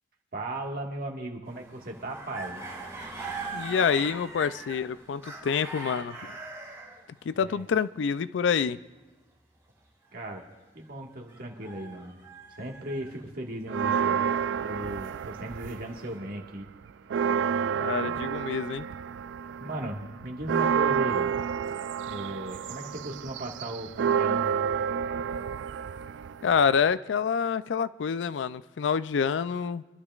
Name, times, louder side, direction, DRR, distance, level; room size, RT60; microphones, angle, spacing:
voice 1, 0.3-2.6 7.4-7.7 10.1-10.4 10.7-12.3 12.6-16.7 18.0-18.2 19.6-21.4 22.0-24.4, right 1 dB, 55° right, 1 dB, 1.7 m, -37 dB
sound 1, 1.5-7.0 11.3-13.3 14.1-16.2, right 3 dB, 15° right, 2.5 m, -42 dB
voice 2, 3.5-6.2 7.3-8.8 17.8-18.9 26.4-29.8, left 6 dB, 80° left, 15 dB, 0.4 m, -27 dB
sound 2, 13.7-16.1 16.4-26.9, right 7 dB, 80° right, 0.3 m, -29 dB
26.5 x 11.5 x 2.4 m, 1.3 s
head